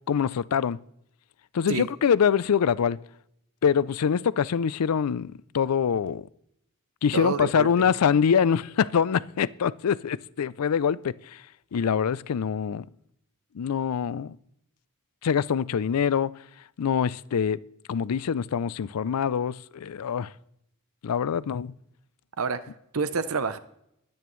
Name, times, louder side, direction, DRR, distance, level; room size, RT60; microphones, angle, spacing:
voice 1, 0.1-0.8 1.5-3.0 3.6-6.3 7.0-11.1 11.7-12.8 13.6-14.4 15.2-16.3 16.8-17.6 17.9-20.3 21.0-21.7, left 7 dB, 85° left, 0.4 m, -24 dB
voice 2, 7.1-7.9 22.4-22.7 22.9-23.6, right 4 dB, 70° right, 0.7 m, -28 dB
20.5 x 8.7 x 3.1 m
head